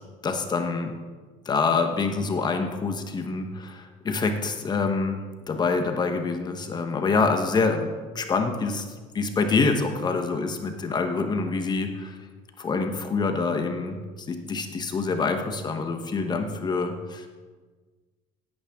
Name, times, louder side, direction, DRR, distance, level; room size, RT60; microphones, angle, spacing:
voice 1, 0.2-0.9 1.5-5.2 5.5-8.8 9.1-12.2 12.6-14.0 14.3-17.3, left 4 dB, 30° left, 5 dB, 1.1 m, -26 dB
16.5 x 9.0 x 3.6 m, 1.4 s
cardioid pair, 125°, 15 cm